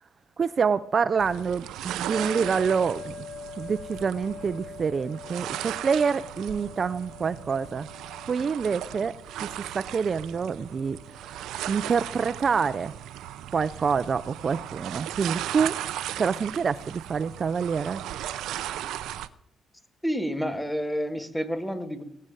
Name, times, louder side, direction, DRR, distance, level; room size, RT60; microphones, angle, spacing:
voice 1, 0.4-3.1 3.6-7.9 8.3-11.0 11.3-11.4 11.7-12.9 13.5-15.8 16.2-18.0, right 6 dB, 45° right, 14 dB, 0.5 m, -27 dB
sound 1, 1.2-19.3, right 12 dB, 85° right, 0.7 m, -37 dB
sound 2, 2.1-14.6, left 5 dB, 35° left, 2.4 m, -45 dB
voice 2, 20.0-22.0, equal, ahead, 10 dB, 1.8 m, -29 dB
18.5 x 6.7 x 9.1 m, 0.73 s
cardioid pair, 90°, 0 cm